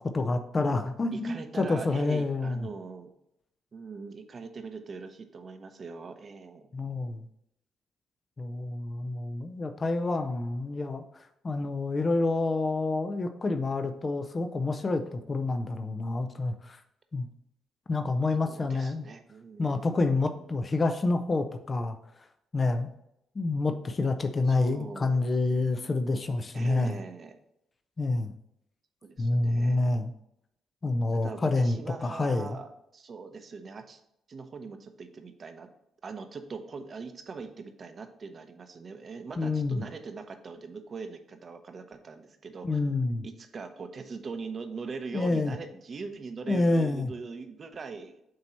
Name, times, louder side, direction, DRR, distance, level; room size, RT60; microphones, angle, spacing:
voice 1, 0.1-2.7 6.7-7.3 8.4-11.0 11.4-16.8 17.1-17.3 17.9-19.1 19.6-22.0 22.5-22.9 23.4-27.0 28.0-28.3 29.2-30.1 30.8-32.6 39.4-39.8 42.6-43.2 45.1-45.5 46.5-47.1, left 3 dB, 30° left, 7 dB, 0.5 m, -28 dB
voice 2, 1.1-3.1 3.7-6.7 18.4-20.6 24.5-25.2 26.5-27.4 29.0-29.8 31.1-34.0 34.3-35.7 36.0-43.0 43.2-48.2, right 4 dB, 45° right, 7 dB, 0.8 m, -41 dB
7.6 x 2.9 x 4.2 m, 0.79 s
cardioid pair, 90°, 0 cm